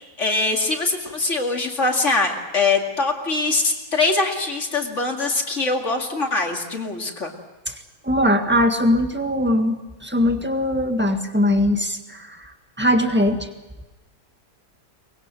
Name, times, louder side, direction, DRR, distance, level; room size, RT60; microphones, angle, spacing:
voice 1, 0.2-7.3, left 3 dB, 50° left, 2 dB, 2.7 m, -23 dB
voice 2, 8.0-12.5 12.8-13.5, left 1 dB, 5° right, 5 dB, 1.7 m, -20 dB
23.5 x 20.5 x 7.7 m, 1.1 s
omnidirectional pair, 1.7 m